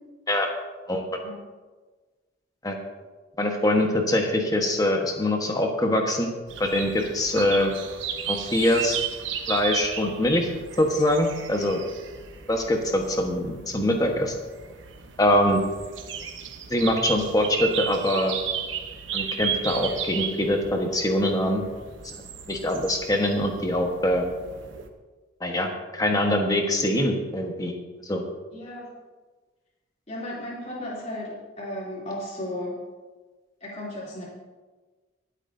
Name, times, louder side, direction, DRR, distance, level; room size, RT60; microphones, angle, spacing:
voice 1, 3.4-6.3 6.6-7.7 8.3-9.0 9.5-10.5 10.8-11.8 12.5-14.3 15.2-15.6 16.7-18.4 19.1-21.6 22.5-24.2 25.4-27.7 28.1-28.2, left 1 dB, 20° left, 2 dB, 1.3 m, -23 dB
sound 1, 6.5-24.9, right 7 dB, 75° right, 1.0 m, -35 dB
voice 2, 28.5-28.9 30.1-32.8 33.6-34.2, left 1 dB, 35° left, -7 dB, 3.1 m, -34 dB
24.0 x 8.2 x 2.7 m, 1.3 s
head